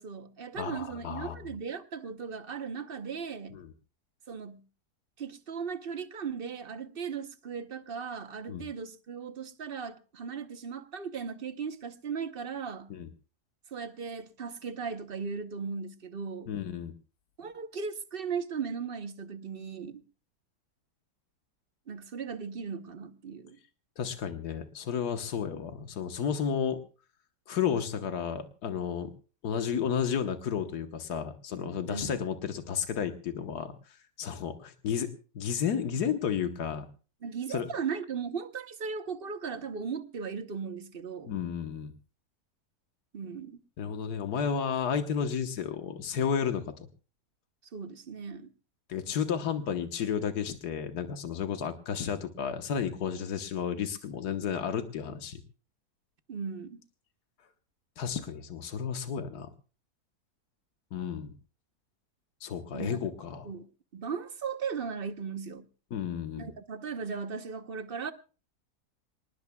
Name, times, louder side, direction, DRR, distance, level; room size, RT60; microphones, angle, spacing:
voice 1, 0.0-3.6 4.3-4.6 5.2-12.9 13.7-16.5 17.4-20.0 21.9-23.6 31.9-32.2 37.2-41.3 43.1-43.6 47.7-48.5 56.3-56.8 62.7-63.0 63.4-63.7 63.9-65.7 66.4-68.1, right 6 dB, 45° right, 0.9 m, -37 dB
voice 2, 0.5-1.4 3.5-3.7 8.5-8.6 12.9-13.1 16.5-16.9 24.0-26.8 27.5-29.1 29.4-33.7 34.2-35.1 35.3-36.9 37.5-37.7 41.3-41.9 43.8-46.7 48.9-55.4 58.0-59.5 60.9-61.3 62.4-63.5 65.9-66.5, left 7 dB, 85° left, 1.7 m, -32 dB
27.5 x 19.5 x 2.3 m
omnidirectional pair, 1.7 m